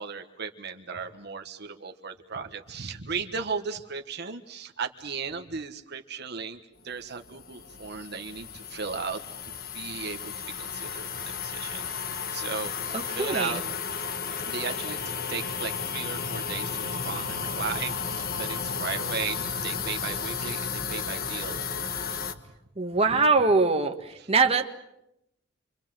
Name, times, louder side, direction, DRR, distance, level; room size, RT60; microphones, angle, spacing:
voice 1, 0.0-6.6 6.8-9.2 9.7-11.1 11.4-13.6 14.4-21.6, right 5 dB, 55° right, 5 dB, 1.5 m, -36 dB
sound 1, 7.2-22.3, left 6 dB, 50° left, 1.7 m, -33 dB
voice 2, 12.9-13.6 22.8-24.6, right 4 dB, 30° right, 4 dB, 1.6 m, -23 dB
28.0 x 24.5 x 7.7 m, 0.83 s
head